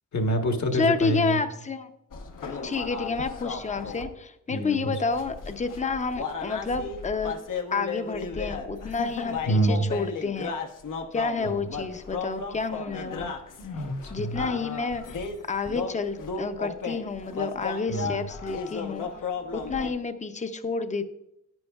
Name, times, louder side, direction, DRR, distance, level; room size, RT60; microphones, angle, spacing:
voice 1, 0.1-1.4 4.5-4.9 9.4-9.8 11.4-11.5 13.6-14.4 17.9-18.2, right 1 dB, 65° left, 5 dB, 1.3 m, -27 dB
voice 2, 0.7-1.9 2.6-7.3 7.7-10.5 11.1-13.3 14.1-15.2 15.5-19.1 19.5-21.0, left 4 dB, 25° left, 9 dB, 0.6 m, -29 dB
sound 1, 2.1-4.0 5.1-19.9, left 5 dB, 80° left, 1.1 m, -35 dB
10.5 x 9.7 x 2.4 m, 0.80 s
wide cardioid pair, 120°, 31 cm